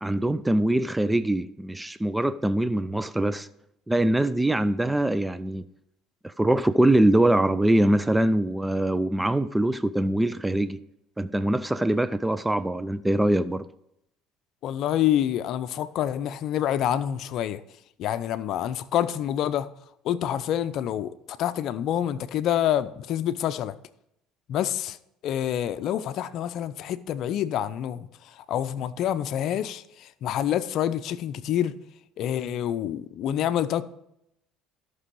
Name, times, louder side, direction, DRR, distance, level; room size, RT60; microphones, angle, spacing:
voice 1, 0.0-3.5 3.9-5.6 6.2-10.8 11.2-13.7, right 1 dB, 10° right, 0.4 m, -23 dB
voice 2, 14.6-17.6 18.0-19.7 20.0-23.7 24.5-25.0 25.2-31.8 32.2-33.8, left 11 dB, 60° left, 0.6 m, -27 dB
13.0 x 6.2 x 4.7 m
supercardioid pair, 100°, 0 cm